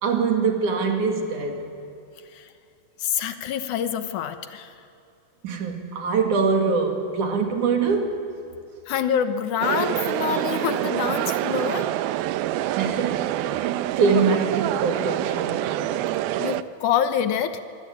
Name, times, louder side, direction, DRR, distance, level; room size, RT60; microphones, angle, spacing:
voice 1, 0.0-1.7 5.4-8.3 12.8-15.7, right 5 dB, 55° right, 5 dB, 3.5 m, -24 dB
voice 2, 3.0-4.7 8.9-11.9 16.4-17.6, left 8 dB, 70° left, 10 dB, 2.2 m, -26 dB
sound 1, 9.6-16.6, right 14 dB, 80° right, 2.5 m, -26 dB
24.5 x 24.5 x 8.5 m, 2.7 s
omnidirectional pair, 4.4 m